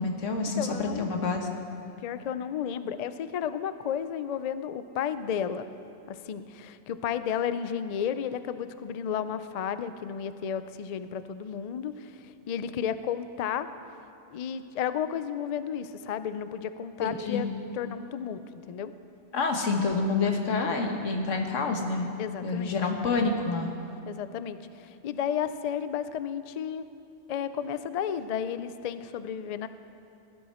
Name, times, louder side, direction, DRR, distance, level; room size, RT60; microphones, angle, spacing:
voice 1, 0.0-1.5 17.0-17.5 19.3-22.1 22.4-23.7, left 4 dB, 90° left, 3 dB, 1.5 m, -28 dB
voice 2, 0.6-1.1 2.0-5.6 6.1-13.7 14.3-17.5 17.7-18.9 22.2-22.7 24.1-26.9 27.3-29.7, left 8 dB, 70° left, 12 dB, 0.3 m, -33 dB
16.5 x 11.5 x 4.3 m, 2.6 s
omnidirectional pair, 1.2 m